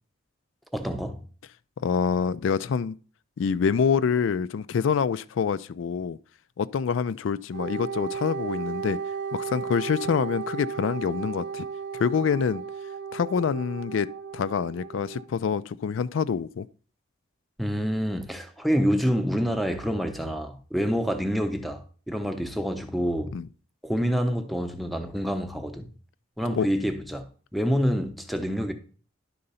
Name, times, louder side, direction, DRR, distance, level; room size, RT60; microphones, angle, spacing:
voice 1, 0.7-1.2 17.6-23.3 23.8-25.9 26.4-28.7, equal, ahead, 0.7 m, -27 dB
voice 2, 1.8-2.9 3.4-6.2 6.6-9.0 9.3-11.7 11.9-12.6 13.1-16.7 23.3-23.5 26.6-26.7, left 6 dB, 75° left, 0.3 m, -26 dB
Wind instrument woodwind instrument, 7.5-15.2, right 6 dB, 60° right, 0.7 m, -35 dB
11.0 x 3.9 x 5.5 m
head